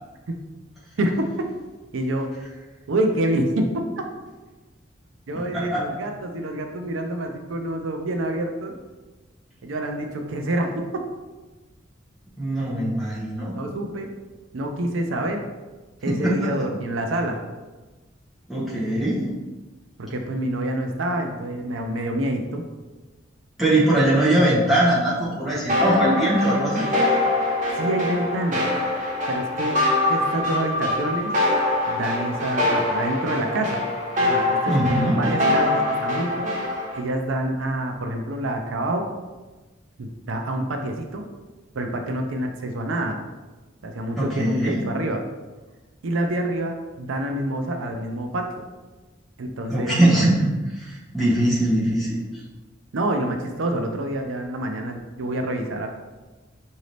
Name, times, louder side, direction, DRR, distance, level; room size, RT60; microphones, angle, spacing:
voice 1, 1.0-1.5 1.9-2.3 2.9-3.7 4.0-4.1 5.3-8.7 9.6-10.7 13.5-14.1 14.5-15.4 16.0-17.4 20.0-22.6 27.7-28.6 29.3-29.8 30.1-31.3 31.9-33.8 34.2-34.7 35.2-36.5 36.9-39.0 40.0-41.2 41.7-43.2 43.8-45.2 46.0-48.5 49.4-50.0 52.9-55.9, right 1 dB, 85° right, 4 dB, 0.5 m, -27 dB
voice 2, 5.3-5.8 12.4-13.5 16.1-16.4 18.5-19.3 23.6-26.9 34.7-35.2 44.2-44.8 49.7-52.2, right 1 dB, ahead, -9 dB, 1.2 m, -21 dB
sound 1, 25.7-37.0, left 2 dB, 40° right, 0.8 m, -24 dB
4.9 x 2.7 x 3.2 m, 1.2 s
head